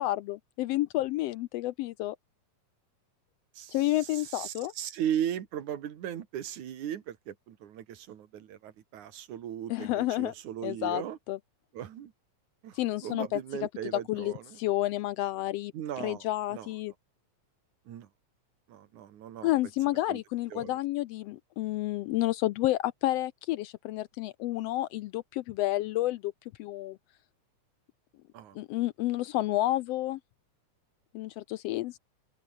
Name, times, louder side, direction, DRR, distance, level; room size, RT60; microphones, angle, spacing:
voice 1, 0.0-2.2 3.7-4.7 9.7-10.3 10.6-11.0 11.3-11.4 12.7-13.4 14.1-15.7 16.0-16.9 19.4-26.3 26.6-27.0 28.5-30.2 31.1-32.0, left 16 dB, 80° left, 1.4 m, -30 dB
voice 2, 3.5-11.2 11.7-12.1 12.6-14.6 15.7-16.7 17.9-18.1 18.7-19.5 20.1-20.2 20.5-20.8 28.3-28.6, right 10 dB, 80° right, 3.3 m, -37 dB
open air
omnidirectional pair, 3.4 m